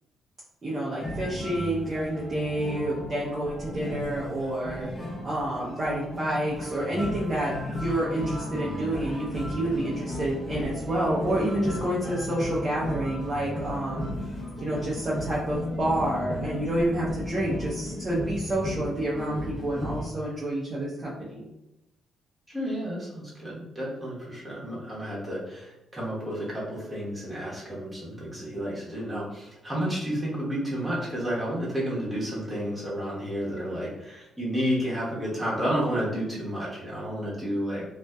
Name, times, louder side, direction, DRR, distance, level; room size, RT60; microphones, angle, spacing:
voice 1, 0.6-4.9 5.2-21.5, right 1 dB, 30° right, -7 dB, 0.6 m, -29 dB
sound 1, 1.0-20.1, left 1 dB, 20° left, 0.8 m, -35 dB
voice 2, 22.5-37.8, equal, 10° right, -7 dB, 1.0 m, -31 dB
2.5 x 2.2 x 2.2 m, 0.92 s
cardioid pair, 90°, 0 cm